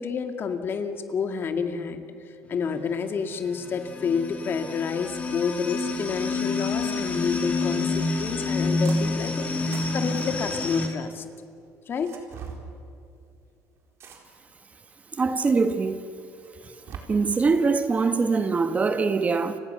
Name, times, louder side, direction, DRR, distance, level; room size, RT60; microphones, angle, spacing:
voice 1, 0.0-2.0 2.5-11.2 11.9-12.2, left 5 dB, 45° left, 2.2 m, -29 dB
sound 1, 2.4-10.9, left 3 dB, 25° left, 3.0 m, -28 dB
sound 2, 8.8-9.3 9.5-11.1 11.9-12.6 14.0-14.5 15.2-15.3 16.4-17.0, right 7 dB, 55° right, 4.2 m, -42 dB
voice 2, 15.2-16.0 17.1-19.6, right 4 dB, 25° right, 1.5 m, -23 dB
29.5 x 26.0 x 6.9 m
cardioid pair, 115°, 5 cm